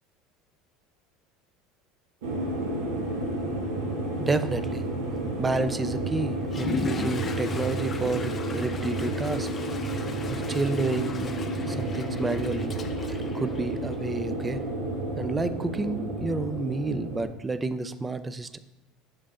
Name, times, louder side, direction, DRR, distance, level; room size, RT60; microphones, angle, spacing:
sound 1, 2.2-17.3, right 1 dB, 85° right, 1.2 m, -31 dB
voice 1, 4.2-4.8 5.4-9.5 10.3-11.4 11.6-12.7 13.0-14.6 15.2-18.6, right 3 dB, 20° right, 13 dB, 0.4 m, -30 dB
Water / Toilet flush, 6.4-14.2, left 5 dB, 35° left, 0.6 m, -39 dB
6.4 x 5.9 x 2.5 m, 1.0 s
hypercardioid pair, 85°, 0 cm